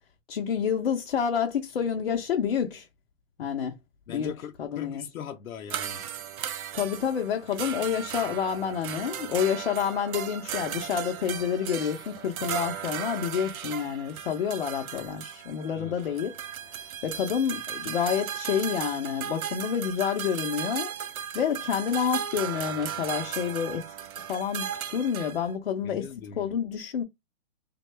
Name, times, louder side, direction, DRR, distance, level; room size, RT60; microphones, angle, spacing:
voice 1, 0.3-2.9 3.4-3.7 4.1-4.3 4.6-5.0 6.7-16.3 16.7-20.9 21.3-23.9 24.2-26.1 26.4-27.0, left 8 dB, 50° left, 0.5 m, -29 dB
voice 2, 4.1-6.1 15.7-16.0 25.8-26.6, left 7 dB, 90° left, 0.7 m, -40 dB
sound 1, 5.7-25.6, right 9 dB, 85° right, 0.6 m, -36 dB
3.5 x 2.2 x 3.1 m
hypercardioid pair, 170°, 41 cm